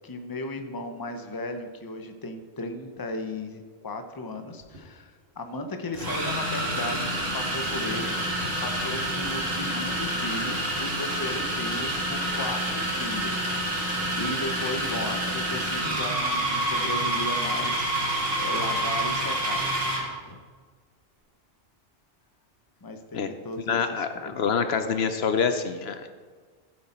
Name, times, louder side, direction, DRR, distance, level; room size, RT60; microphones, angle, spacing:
voice 1, 0.0-8.2 8.6-17.9 18.4-19.7 20.2-20.4 22.8-24.4, left 2 dB, 20° left, 6 dB, 0.8 m, -36 dB
sound 1, 4.6-4.8 5.9-20.1, right 1 dB, 60° right, 2.2 m, -28 dB
voice 2, 23.7-26.1, left 6 dB, 70° left, 9 dB, 0.9 m, -26 dB
14.0 x 7.6 x 4.3 m, 1.5 s
omnidirectional pair, 1.1 m